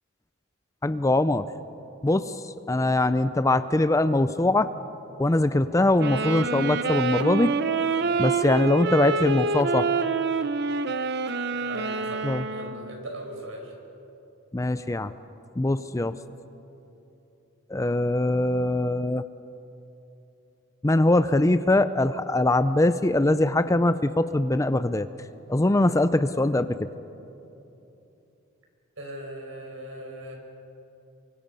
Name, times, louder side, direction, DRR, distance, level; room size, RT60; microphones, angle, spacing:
voice 1, 0.8-1.5 2.0-4.7 5.2-7.5 8.2-9.9 12.2-12.4 14.5-15.1 15.6-16.2 17.7-19.2 20.8-25.1 25.5-26.9, left 2 dB, 15° left, 12 dB, 0.5 m, -22 dB
sound 1, 6.0-13.0, right 4 dB, 50° right, 0.9 m, -27 dB
voice 2, 11.5-13.7 29.0-30.3, right 1 dB, 70° right, 1 dB, 5.5 m, -39 dB
28.5 x 24.5 x 5.5 m, 2.9 s
head